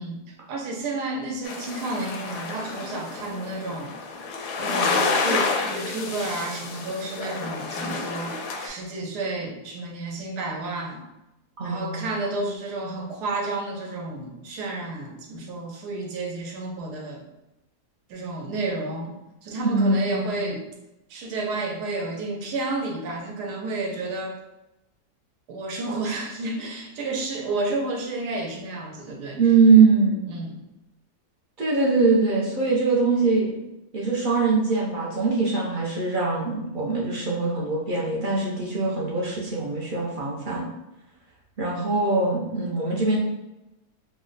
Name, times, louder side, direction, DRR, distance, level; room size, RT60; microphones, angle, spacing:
voice 1, 0.0-4.2 4.6-11.0 11.6-17.2 18.1-19.1 19.4-20.6 21.1-24.4 25.5-29.4 30.3-30.6, right 2 dB, 85° right, 1 dB, 1.3 m, -31 dB
sound 1, 1.4-8.7, left 4 dB, 85° left, 1.1 m, -29 dB
voice 2, 11.6-12.1 19.6-20.5 29.3-30.2 31.6-33.5 33.9-40.6 41.6-43.2, right 4 dB, 60° right, -4 dB, 0.5 m, -22 dB
3.1 x 2.1 x 3.8 m, 0.95 s
omnidirectional pair, 1.7 m